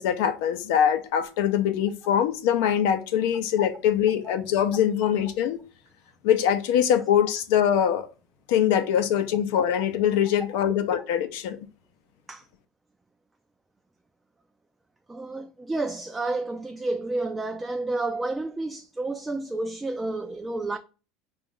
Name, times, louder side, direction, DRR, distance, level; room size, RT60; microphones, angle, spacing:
voice 1, 0.0-5.6 6.2-8.1 8.5-11.6, left 9 dB, 75° left, 0.6 m, -23 dB
voice 2, 15.1-20.8, right 2 dB, 15° right, 0.3 m, -30 dB
4.0 x 2.4 x 3.7 m
supercardioid pair, 110°, 0 cm